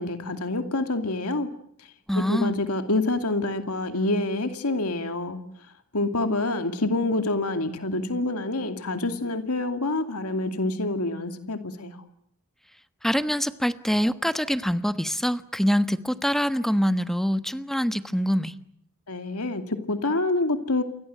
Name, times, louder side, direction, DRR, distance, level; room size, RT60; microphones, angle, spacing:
voice 1, 0.0-1.5 2.1-5.4 5.9-12.0 19.1-20.8, left 2 dB, 85° left, 7 dB, 2.6 m, -27 dB
voice 2, 2.1-2.5 13.0-18.5, equal, ahead, 11 dB, 1.2 m, -24 dB
29.5 x 23.5 x 7.8 m, 0.70 s
head